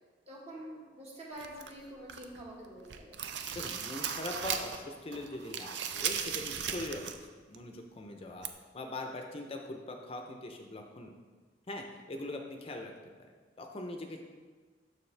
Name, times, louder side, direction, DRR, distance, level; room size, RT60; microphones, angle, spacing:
voice 1, 0.3-3.1, right 1 dB, 35° right, -3 dB, 1.5 m, -46 dB
sound 1, 1.4-2.4 2.8-4.8 5.1-7.2 7.5-7.6 8.4-8.5, right 8 dB, 75° right, 0.5 m, -37 dB
voice 2, 3.6-8.5 8.7-11.1 11.7-12.9 13.2-13.3 13.6-14.2, left 2 dB, 30° left, 3 dB, 0.5 m, -41 dB
7.0 x 6.4 x 3.3 m, 1.5 s
head